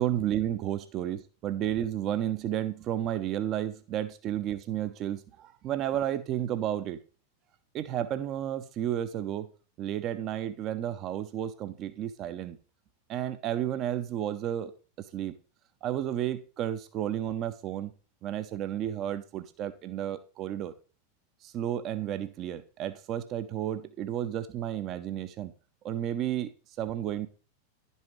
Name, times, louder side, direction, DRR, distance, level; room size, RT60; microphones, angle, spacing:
voice 1, 0.0-7.0 7.7-9.5 9.8-12.6 13.1-14.7 15.1-15.3 15.8-17.9 18.2-20.7 21.4-25.5 25.8-26.5 26.8-27.3, right 11 dB, 35° right, 0.5 m, -32 dB
11.0 x 5.4 x 3.1 m
figure-of-eight pair, 90°, 0 cm